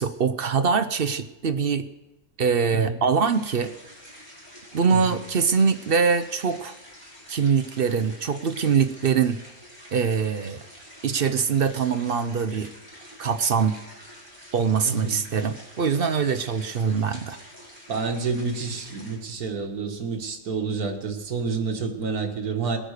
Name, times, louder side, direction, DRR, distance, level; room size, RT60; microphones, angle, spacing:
voice 1, 0.0-1.9 2.4-3.7 4.7-6.7 7.3-9.4 9.9-10.6 11.0-12.7 13.2-13.8 14.5-17.4, right 6 dB, 50° right, 10 dB, 0.7 m, -23 dB
sound 1, 3.2-19.2, equal, 15° right, 5.0 m, -47 dB
voice 2, 14.8-15.2 17.9-22.8, right 4 dB, 85° right, 4 dB, 2.1 m, -29 dB
20.5 x 8.9 x 6.6 m, 1.0 s
omnidirectional pair, 1.5 m